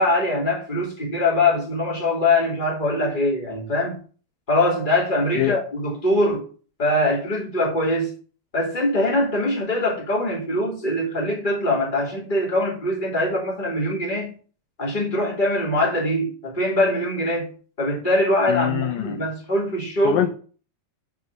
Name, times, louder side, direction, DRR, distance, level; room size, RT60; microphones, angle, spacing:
voice 1, 0.0-4.0 4.5-6.4 6.8-8.1 8.5-14.3 14.8-17.5 17.8-20.3, left 1 dB, 15° left, 3.2 m, -22 dB
voice 2, 18.5-19.2 20.0-20.3, left 13 dB, 75° left, 2.1 m, -23 dB
7.5 x 5.7 x 6.6 m
omnidirectional pair, 4.3 m